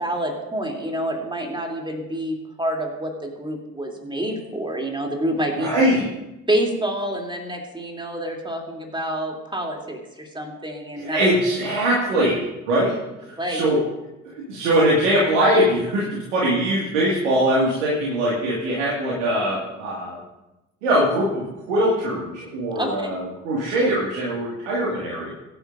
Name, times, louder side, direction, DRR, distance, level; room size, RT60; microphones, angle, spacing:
voice 1, 0.0-5.7 6.5-11.2 13.4-13.6 22.8-23.1, right 1 dB, 15° right, 1 dB, 3.0 m, -27 dB
voice 2, 5.6-6.1 11.0-13.0 13.2-13.8 14.2-20.2 20.8-25.3, right 1 dB, 70° right, -5 dB, 2.1 m, -22 dB
22.0 x 9.7 x 2.6 m, 0.98 s
figure-of-eight pair, 45°, 37 cm